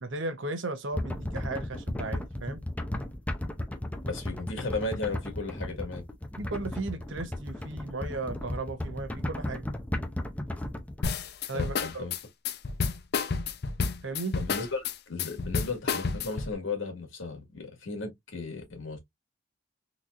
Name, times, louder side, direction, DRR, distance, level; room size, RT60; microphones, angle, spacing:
voice 1, 0.0-2.6 6.4-9.7 11.5-12.1 14.0-14.4, right 2 dB, 70° right, 0.8 m, -35 dB
sound 1, 0.9-11.0, left 1 dB, 5° left, 0.5 m, -35 dB
voice 2, 4.1-6.0 11.5-12.1 14.3-19.0, left 3 dB, 85° left, 1.8 m, -35 dB
sound 2, 11.0-16.5, left 5 dB, 55° left, 0.5 m, -30 dB
3.9 x 3.0 x 2.5 m
head